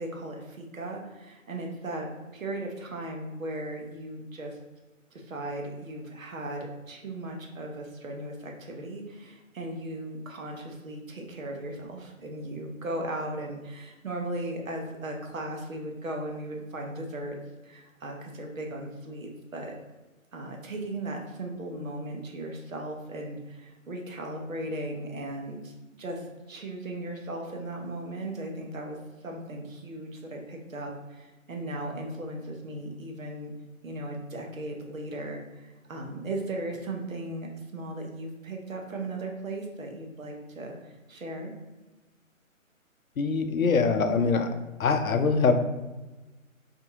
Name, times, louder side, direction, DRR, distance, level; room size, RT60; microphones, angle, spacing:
voice 1, 0.0-4.6 5.1-17.4 17.6-19.7 20.3-33.5 33.8-41.5, right 1 dB, 75° right, 1 dB, 0.8 m, -37 dB
voice 2, 43.2-44.5 44.8-45.5, left 4 dB, 80° left, 7 dB, 0.5 m, -23 dB
2.6 x 2.6 x 2.6 m, 1.1 s
figure-of-eight pair, 150°, 41 cm